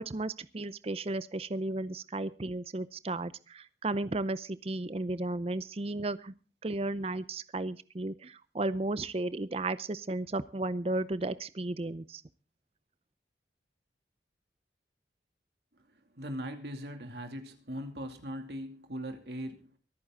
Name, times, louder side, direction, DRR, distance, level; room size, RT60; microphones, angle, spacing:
voice 1, 0.0-6.3 6.6-12.2, right 2 dB, 35° right, 15 dB, 0.6 m, -34 dB
voice 2, 16.1-19.7, equal, 70° right, 5 dB, 2.5 m, -40 dB
24.0 x 9.2 x 3.8 m, 0.36 s
head